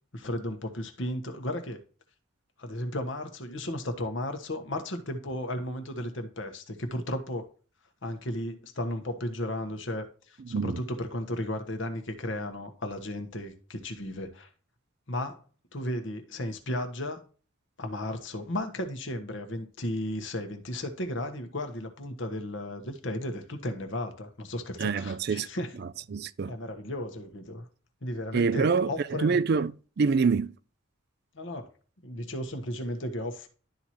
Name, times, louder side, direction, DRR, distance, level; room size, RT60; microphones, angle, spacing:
voice 1, 0.1-1.8 2.6-7.5 8.0-14.5 15.1-15.4 15.7-17.2 17.8-25.7 26.5-27.6 28.0-29.4 31.3-31.7 32.0-33.5, left 1 dB, 60° left, 1.3 m, -34 dB
voice 2, 10.5-10.8 24.8-25.5 25.8-26.5 28.3-28.9 29.2-30.5, right 5 dB, 50° right, 0.4 m, -26 dB
12.0 x 4.3 x 3.0 m
head